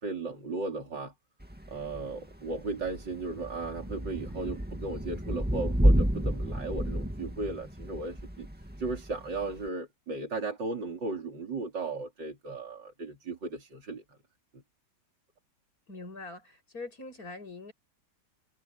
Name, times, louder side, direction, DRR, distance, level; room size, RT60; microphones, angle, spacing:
voice 1, 0.0-1.1 1.7-8.5 8.8-14.2 14.5-14.6, right 3 dB, 80° right, 4.2 m, -36 dB
Thunder / Rain, 1.4-9.7, equal, 5° right, 2.0 m, -30 dB
voice 2, 15.9-17.7, left 3 dB, 55° left, 8.2 m, -43 dB
omnidirectional pair, 1.9 m